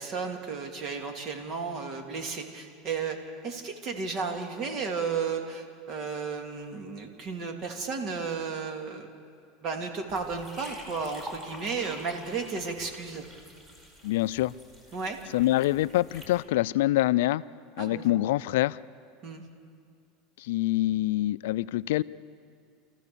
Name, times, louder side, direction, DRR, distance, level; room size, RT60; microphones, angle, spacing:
voice 1, 0.0-3.2 3.4-9.1 9.6-13.2 14.9-15.2 17.8-18.0 19.2-19.4, right 5 dB, 45° right, 4 dB, 2.7 m, -33 dB
sound 1, 10.1-16.4, equal, 20° right, 4.1 m, -48 dB
voice 2, 14.0-14.5 15.3-17.4 17.8-18.8 20.4-22.0, left 16 dB, 80° left, 17 dB, 0.4 m, -25 dB
27.0 x 14.5 x 7.0 m, 2.3 s
supercardioid pair, 120°, 0 cm